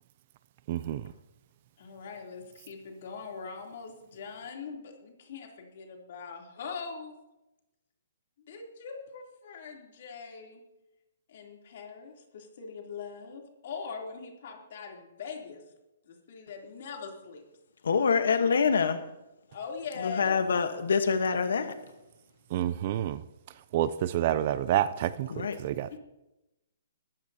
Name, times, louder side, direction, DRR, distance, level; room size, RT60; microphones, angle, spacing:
voice 1, 0.7-1.1 22.5-23.2 23.7-26.0, right 12 dB, 35° right, 15 dB, 0.4 m, -29 dB
voice 2, 1.8-7.2 8.5-10.6 11.3-15.6 16.0-17.4 19.5-20.3, left 5 dB, 45° left, 0 dB, 3.2 m, -42 dB
voice 3, 17.8-19.0 20.0-21.7 25.3-25.6, left 5 dB, 80° left, 8 dB, 1.2 m, -25 dB
20.0 x 14.5 x 2.9 m, 0.97 s
hypercardioid pair, 170°, 0 cm